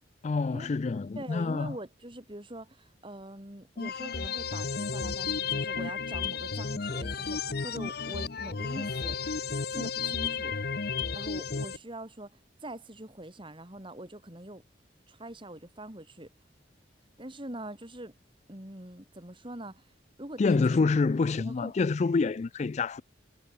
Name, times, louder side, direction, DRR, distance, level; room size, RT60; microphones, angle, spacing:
voice 1, 0.2-1.8 20.4-23.0, left 4 dB, 35° left, 0.3 m, -27 dB
voice 2, 1.1-9.2 9.7-10.5 11.1-14.6 15.1-16.3 17.2-18.1 18.5-19.9 20.2-20.8 21.4-21.7, right 1 dB, 25° right, 3.3 m, -43 dB
sound 1, 3.8-11.8, left 5 dB, 55° left, 0.9 m, -33 dB
head